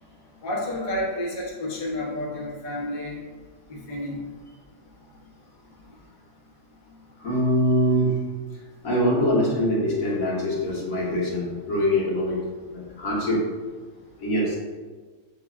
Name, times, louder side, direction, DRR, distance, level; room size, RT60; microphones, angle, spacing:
voice 1, 0.4-3.2 3.7-4.2, left 1 dB, 40° left, -4 dB, 0.9 m, -30 dB
voice 2, 7.2-8.2 8.8-13.4 14.2-14.6, equal, 75° left, -5 dB, 1.6 m, -23 dB
6.6 x 3.3 x 2.4 m, 1.4 s
omnidirectional pair, 1.5 m